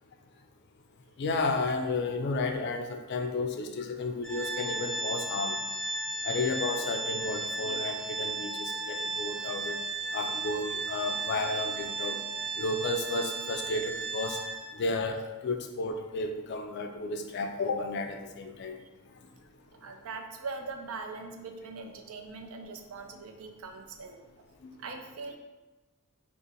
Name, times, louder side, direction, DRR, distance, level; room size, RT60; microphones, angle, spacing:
voice 1, 1.2-5.6 6.2-9.8 10.1-12.2 12.6-14.4 14.7-18.8 24.6-24.7, left 3 dB, 50° left, 4 dB, 0.3 m, -32 dB
Organ, 4.2-14.9, right 3 dB, 5° left, 0.7 m, -35 dB
voice 2, 19.8-24.2 24.8-25.4, right 4 dB, 70° right, 4 dB, 0.4 m, -41 dB
2.6 x 2.5 x 3.9 m, 1.1 s
head